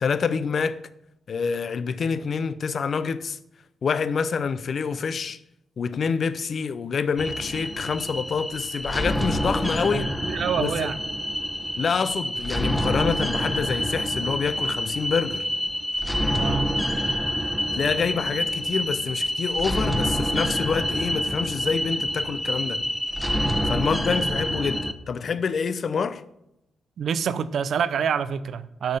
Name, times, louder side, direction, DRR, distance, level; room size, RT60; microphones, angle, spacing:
voice 1, 0.0-0.8 1.3-3.4 3.8-5.4 5.8-10.1 10.6-10.9 11.8-15.5 17.7-22.8 23.6-26.2, left 6 dB, 60° left, 0.7 m, -27 dB
sound 1, 7.2-24.9, equal, ahead, 1.2 m, -27 dB
voice 2, 9.9-11.0 16.3-16.8 24.2-24.3 27.0-29.0, right 7 dB, 70° right, 0.7 m, -27 dB
8.9 x 5.5 x 8.0 m
supercardioid pair, 55°, 0 cm